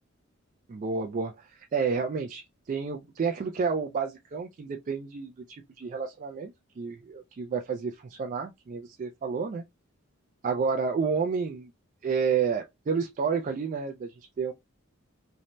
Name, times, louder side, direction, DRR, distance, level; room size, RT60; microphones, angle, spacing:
voice 1, 0.7-9.6 10.4-11.7 12.0-14.1 14.4-14.5, right 5 dB, 40° right, 0.3 m, -30 dB
2.6 x 2.1 x 2.9 m
head